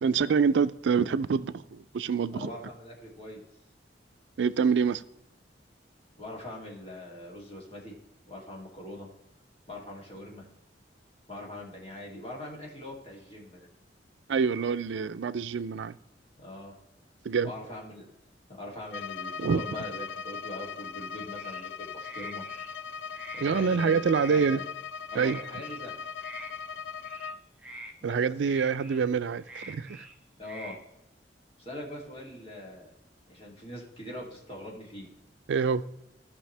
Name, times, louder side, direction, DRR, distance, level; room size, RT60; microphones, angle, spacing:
voice 1, 0.0-2.5 4.4-5.0 14.3-15.9 17.2-17.5 19.4-19.6 23.4-24.6 25.1-25.5 28.0-30.1 35.5-35.8, right 6 dB, 80° right, 0.4 m, -26 dB
voice 2, 2.3-3.4 6.2-7.9 8.3-9.1 9.7-10.4 11.3-13.7 16.4-16.7 17.4-18.1 18.5-22.4 23.3-24.6 25.1-25.9 28.0-28.2 30.4-30.8 31.6-32.9 33.3-35.1, left 1 dB, 35° left, 2.7 m, -42 dB
Bowed string instrument, 18.9-27.5, left 6 dB, 70° left, 0.3 m, -39 dB
sound 1, 21.3-21.7 22.0-22.7 23.1-23.8 24.1-24.5 25.1-25.8 26.2-26.5 27.0-27.3 27.6-27.9 28.4-29.0 29.4-30.1 30.4-30.8, right 1 dB, 5° right, 1.0 m, -46 dB
15.0 x 5.5 x 3.3 m
head